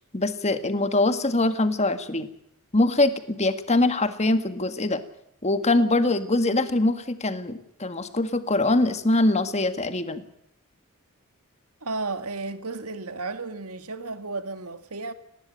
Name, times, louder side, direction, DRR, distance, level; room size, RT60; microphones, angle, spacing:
voice 1, 0.1-2.3 2.7-5.0 5.4-10.2, left 2 dB, 30° left, 1.7 m, -23 dB
voice 2, 11.8-15.1, right 3 dB, 85° right, 1.9 m, -33 dB
19.5 x 18.5 x 8.9 m
head